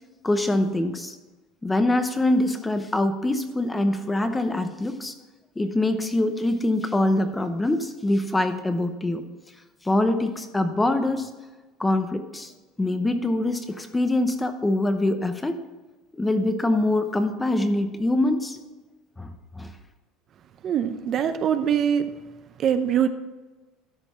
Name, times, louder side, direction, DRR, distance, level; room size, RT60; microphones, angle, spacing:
voice 1, 0.2-1.2 1.6-5.1 5.6-9.2 9.8-11.3 11.8-12.5 12.8-15.6 16.2-18.6 19.2-19.7, left 1 dB, 10° left, 8 dB, 0.8 m, -24 dB
voice 2, 20.6-22.1 22.6-23.1, right 8 dB, 35° right, 10 dB, 0.6 m, -23 dB
12.5 x 5.2 x 5.9 m, 1.2 s
cardioid pair, 150°, 0 cm